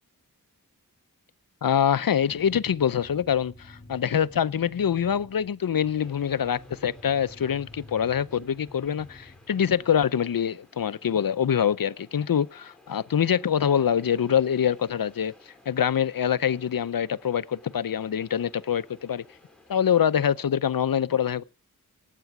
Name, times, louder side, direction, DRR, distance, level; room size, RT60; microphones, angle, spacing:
voice 1, 1.6-15.3 15.7-19.2 19.7-21.4, left 8 dB, 85° left, 0.6 m, -25 dB
sound 1, 2.0-10.0, left 1 dB, 30° left, 1.8 m, -50 dB
sound 2, 6.0-20.5, left 2 dB, 5° left, 3.9 m, -56 dB
17.5 x 8.4 x 5.9 m
wide cardioid pair, 45°, 34 cm